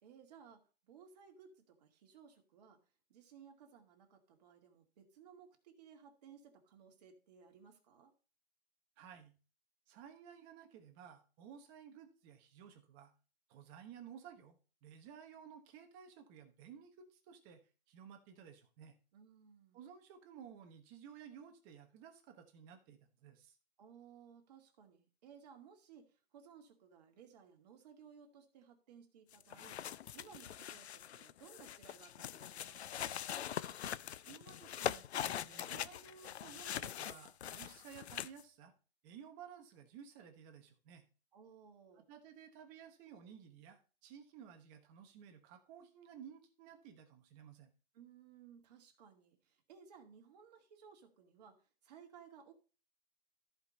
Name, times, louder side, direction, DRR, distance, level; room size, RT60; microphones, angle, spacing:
voice 1, 0.0-2.8 3.1-8.1 19.1-19.8 23.8-29.8 30.1-33.2 41.3-42.1 47.9-52.5, right 7 dB, 35° right, 3 dB, 2.3 m, -60 dB
voice 2, 9.0-9.3 9.9-13.1 13.5-17.6 17.9-19.0 19.7-23.6 34.3-38.7 39.0-41.0 41.9-47.7, right 8 dB, 20° right, 5 dB, 1.1 m, -55 dB
sound 1, 29.3-38.4, left 10 dB, 70° left, 0.6 m, -43 dB
14.0 x 5.2 x 4.1 m, 0.35 s
hypercardioid pair, 165°, 33 cm